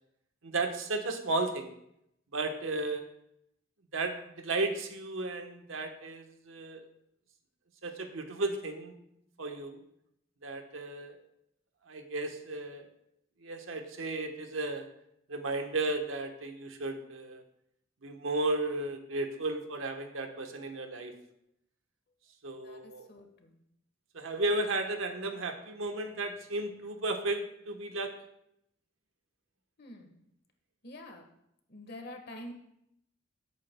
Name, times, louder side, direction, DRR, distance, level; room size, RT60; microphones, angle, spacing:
voice 1, 0.4-1.7 2.3-3.0 3.9-6.8 7.8-8.9 9.4-9.8 10.4-11.2 11.9-12.9 13.4-14.9 15.3-17.4 18.0-21.1 22.4-23.1 24.1-28.1, right 2 dB, 90° right, 5 dB, 1.1 m, -34 dB
voice 2, 22.6-23.6 29.8-30.2 30.8-31.3 31.7-32.5, left 1 dB, 55° left, 4 dB, 1.4 m, -47 dB
17.5 x 8.5 x 2.2 m, 0.78 s
head